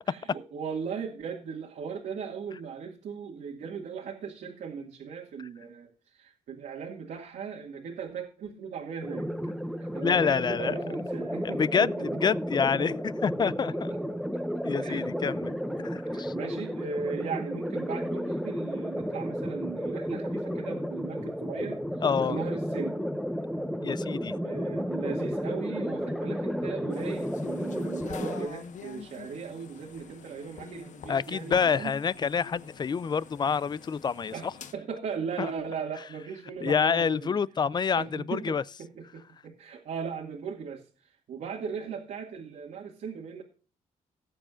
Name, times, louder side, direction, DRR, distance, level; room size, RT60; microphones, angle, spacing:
voice 1, 0.1-9.3 9.8-12.2 12.8-12.9 13.7-13.8 14.1-15.5 16.1-23.0 24.4-32.0 34.3-37.4 38.0-43.4, right 6 dB, 75° right, 2.1 m, -38 dB
sound 1, 9.0-28.5, equal, ahead, 1.0 m, -32 dB
voice 2, 10.0-10.8 11.4-13.9 14.6-15.5 15.8-16.3 22.0-22.4 23.8-24.4 31.1-34.3 35.4-35.5 36.6-38.6, left 6 dB, 30° left, 0.4 m, -27 dB
sound 2, 26.9-34.7, left 7 dB, 65° left, 1.2 m, -46 dB
19.0 x 7.5 x 2.5 m
cardioid pair, 105°, 14 cm